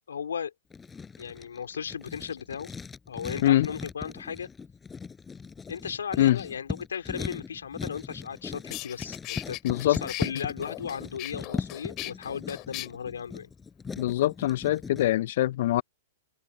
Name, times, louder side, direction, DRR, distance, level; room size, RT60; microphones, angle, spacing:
voice 1, 0.1-0.5 1.2-2.7 3.1-4.5 5.7-13.5, left 7 dB, 85° left, 3.5 m, -36 dB
Writing, 0.7-15.1, left 5 dB, 15° left, 7.3 m, -39 dB
sound 1, 8.3-8.4 8.7-12.9, left 20 dB, 40° left, 2.6 m, -38 dB
voice 2, 9.6-10.0 10.3-10.5 14.0-15.8, left 14 dB, 60° left, 0.4 m, -24 dB
hypercardioid pair, 125°, 0 cm